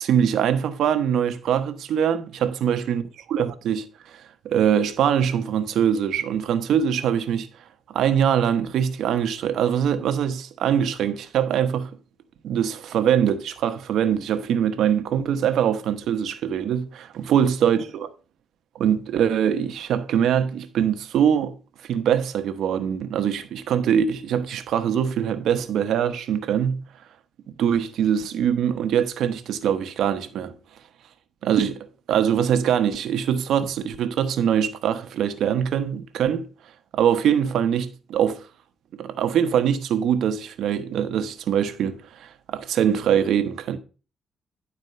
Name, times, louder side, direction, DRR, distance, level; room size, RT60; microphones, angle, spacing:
voice 1, 0.0-3.0 3.3-3.9 4.1-7.5 7.9-11.9 12.4-18.1 18.7-21.5 21.9-26.8 27.5-30.5 31.4-36.4 36.9-38.4 38.9-43.8, right 8 dB, 80° right, 1.0 m, -23 dB
11.0 x 4.4 x 5.5 m
cardioid pair, 130°, 0 cm